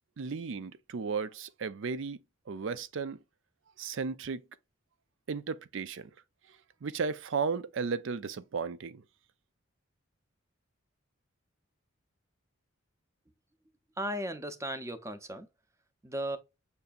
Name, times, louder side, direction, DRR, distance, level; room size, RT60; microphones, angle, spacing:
voice 1, 0.2-3.2 3.8-4.4 5.3-6.1 6.8-9.0, right 5 dB, 65° right, 0.5 m, -35 dB
voice 2, 14.0-15.5 16.0-16.4, right 1 dB, 15° right, 0.6 m, -36 dB
6.7 x 2.7 x 2.3 m
head